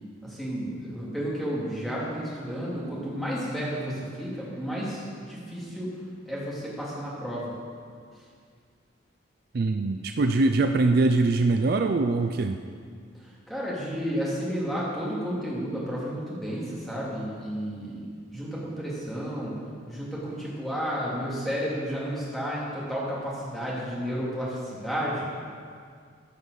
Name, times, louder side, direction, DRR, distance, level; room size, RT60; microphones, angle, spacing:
voice 1, 0.2-5.9 6.3-7.5 13.2-18.0 18.3-19.6 19.9-25.3, equal, ahead, -7 dB, 2.5 m, -32 dB
voice 2, 9.5-12.6, right 3 dB, 50° right, 6 dB, 0.4 m, -23 dB
15.0 x 5.4 x 6.5 m, 2.1 s
head